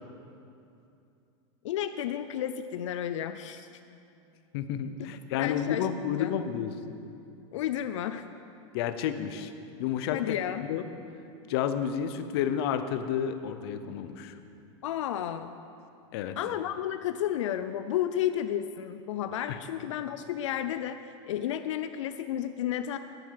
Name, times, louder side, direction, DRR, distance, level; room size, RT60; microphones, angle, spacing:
voice 1, 1.6-3.7 5.4-5.9 6.2-6.3 7.5-8.2 10.1-10.6 14.8-15.5 16.4-21.0 21.3-23.0, left 11 dB, 90° left, 10 dB, 0.5 m, -32 dB
voice 2, 4.5-6.8 8.7-9.5 9.8-10.8 11.5-14.4 16.1-16.4 19.5-19.6, left 9 dB, 55° left, 9 dB, 0.8 m, -31 dB
10.5 x 9.7 x 5.8 m, 2.6 s
supercardioid pair, 160°, 15 cm